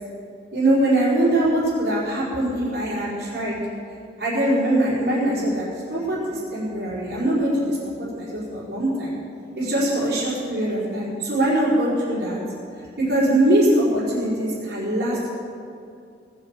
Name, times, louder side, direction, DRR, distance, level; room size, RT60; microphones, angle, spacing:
voice 1, 0.5-3.6 4.2-7.8 8.1-9.2 9.5-12.4 13.0-15.3, right 1 dB, 60° right, -8 dB, 4.9 m, -22 dB
19.0 x 8.2 x 7.5 m, 2.4 s
head